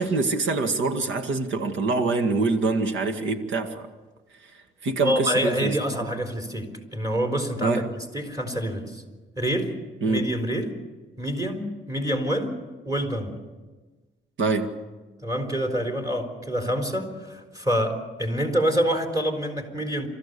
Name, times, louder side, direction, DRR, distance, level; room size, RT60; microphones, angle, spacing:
voice 1, 0.0-3.9 4.8-5.8 7.6-7.9 10.0-10.3 14.4-14.8, right 3 dB, 75° right, 7 dB, 2.0 m, -24 dB
voice 2, 5.0-9.0 9.4-9.7 10.1-10.7 11.2-13.4 15.2-20.1, equal, 15° right, 5 dB, 4.1 m, -27 dB
29.5 x 14.5 x 6.9 m, 1.3 s
cardioid pair, 90°, 20 cm